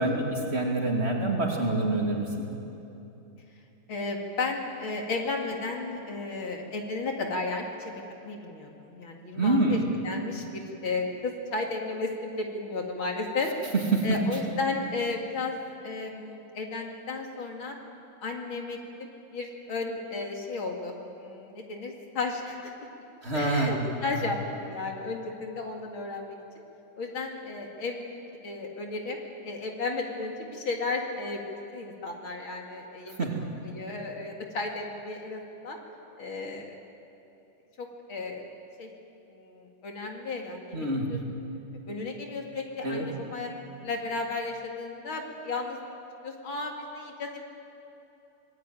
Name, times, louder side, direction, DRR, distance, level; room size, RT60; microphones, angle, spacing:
voice 1, 0.0-2.5 9.3-9.8 13.9-14.2 23.2-23.7 33.2-33.4 40.7-41.2 42.8-43.1, right 2 dB, 30° right, -1 dB, 3.1 m, -26 dB
voice 2, 3.9-9.8 10.0-13.5 14.0-15.6 15.8-17.7 18.2-22.7 23.3-26.4 27.0-33.3 33.6-35.8 36.2-36.8 37.8-38.4 38.8-38.9 39.3-41.2 41.9-43.5 43.8-45.8 46.2-47.4, left 3 dB, 70° left, 1 dB, 3.1 m, -34 dB
25.5 x 20.0 x 9.1 m, 2.9 s
omnidirectional pair, 2.3 m